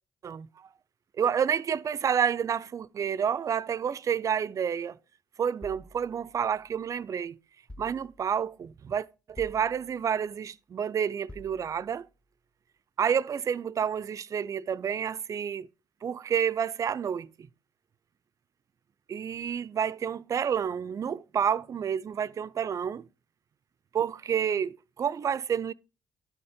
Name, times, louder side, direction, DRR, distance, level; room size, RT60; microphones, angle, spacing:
voice 1, 0.2-0.7 1.2-5.0 5.4-7.4 7.8-12.1 13.0-15.7 16.0-17.3 19.1-23.1 23.9-25.7, right 8 dB, 50° right, 0.4 m, -29 dB
sound 1, 5.6-7.0 7.7-8.5 9.3-10.2 11.3-12.1, left 1 dB, 15° left, 0.7 m, -50 dB
11.0 x 4.4 x 5.0 m
supercardioid pair, 60°, 7 cm